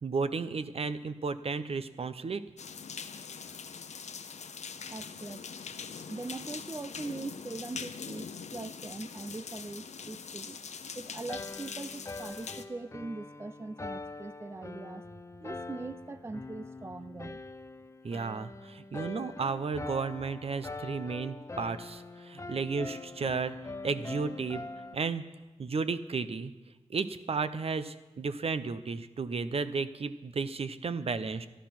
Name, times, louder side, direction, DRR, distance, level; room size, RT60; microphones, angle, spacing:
voice 1, 0.0-2.4 18.0-23.5 23.8-24.7 24.9-25.2 25.6-26.5 26.9-31.5, right 4 dB, 55° right, 0.7 m, -33 dB
sound 1, 2.6-12.6, left 6 dB, 70° left, 0.7 m, -43 dB
voice 2, 4.9-5.4 6.1-10.6 11.0-15.1 15.4-17.4, right 3 dB, 20° right, 0.3 m, -41 dB
sound 2, 11.3-24.9, left 3 dB, 25° left, 0.6 m, -43 dB
12.5 x 11.0 x 5.9 m
wide cardioid pair, 80°, 12 cm